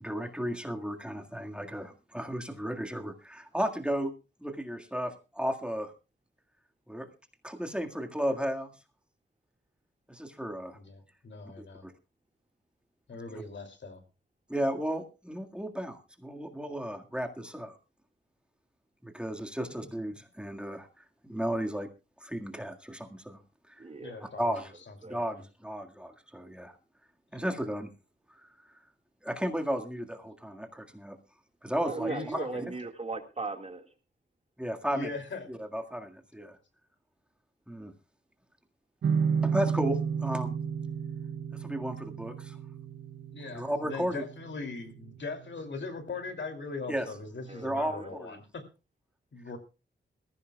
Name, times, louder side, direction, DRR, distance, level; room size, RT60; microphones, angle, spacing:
voice 1, 0.0-4.1 4.4-5.9 6.9-7.1 7.4-8.7 10.1-10.8 11.8-11.9 13.3-13.4 14.5-17.8 19.0-21.9 22.2-23.4 23.7-23.8 24.4-24.7 25.0-26.8 27.3-27.9 28.4-28.8 29.2-31.2 31.6-32.1 34.6-35.1 35.5-36.6 37.7-37.9 39.4-40.5 41.5-42.6 43.5-44.2 46.9-47.1 47.6-48.4, equal, 5° right, 3 dB, 1.8 m, -34 dB
voice 2, 10.7-11.8 13.1-14.0 24.0-24.5 24.9-25.4 27.3-27.4 32.1-32.7 34.9-35.5 43.3-48.6 49.3-49.6, left 4 dB, 65° left, 6 dB, 2.8 m, -40 dB
voice 3, 23.8-24.3 25.0-25.2 31.8-33.9 47.5-48.1, right 3 dB, 30° right, 6 dB, 1.9 m, -38 dB
sound 1, 39.0-46.2, right 6 dB, 70° right, 0.7 m, -33 dB
21.0 x 15.0 x 2.3 m, 0.31 s
wide cardioid pair, 125°, 20 cm